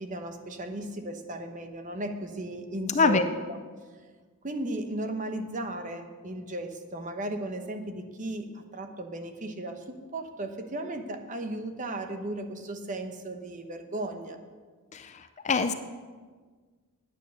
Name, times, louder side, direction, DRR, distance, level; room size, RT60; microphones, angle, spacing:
voice 1, 0.0-3.6 4.4-14.4, right 1 dB, 35° right, 6 dB, 1.0 m, -36 dB
voice 2, 3.0-3.2 14.9-15.1 15.4-15.7, left 4 dB, 30° left, 10 dB, 0.5 m, -23 dB
9.6 x 9.1 x 6.7 m, 1.5 s
head